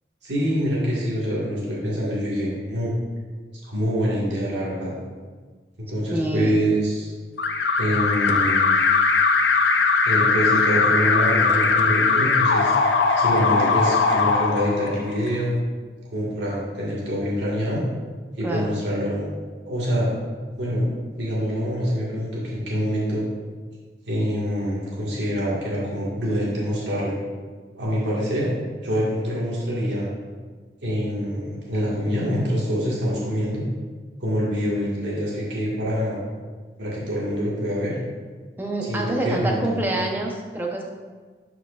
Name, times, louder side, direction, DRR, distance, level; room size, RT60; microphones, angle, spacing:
voice 1, 0.2-2.9 3.6-4.9 5.9-7.1 7.8-8.8 10.0-12.7 13.2-15.6 16.1-17.8 18.4-19.3 19.7-20.1 20.6-20.9 21.2-23.3 24.1-27.2 27.7-28.5 28.8-30.1 30.8-33.6 34.2-36.2 36.8-38.0 38.8-39.8, equal, 90° right, -6 dB, 1.7 m, -25 dB
voice 2, 6.1-6.6 18.4-18.8 38.6-40.8, right 2 dB, 10° right, -1 dB, 0.7 m, -26 dB
Alarm, 7.4-15.3, left 4 dB, 90° left, 0.5 m, -20 dB
11.5 x 4.8 x 2.4 m, 1.4 s
head